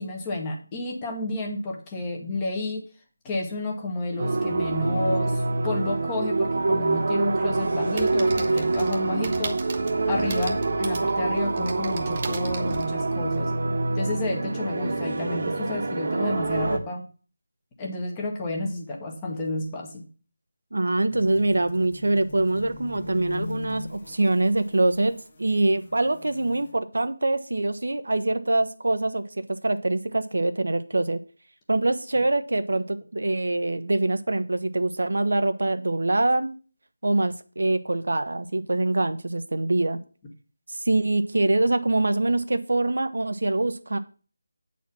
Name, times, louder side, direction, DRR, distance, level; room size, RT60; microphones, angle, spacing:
voice 1, 0.0-2.8 3.2-9.6 10.1-13.5 13.9-17.0 17.8-20.0, left 2 dB, 15° left, 1 dB, 1.3 m, -31 dB
sound 1, 4.2-16.8, right 3 dB, 55° right, 1.2 m, -26 dB
sound 2, 7.9-13.5, right 4 dB, 30° right, 0.8 m, -38 dB
voice 2, 20.7-31.2 31.7-36.5 37.0-40.0 40.7-44.0, right 2 dB, 75° right, 10 dB, 0.8 m, -24 dB
sound 3, 21.1-26.7, left 3 dB, 30° left, 1.5 m, -41 dB
8.3 x 4.3 x 5.9 m, 0.38 s
figure-of-eight pair, 170°, 0 cm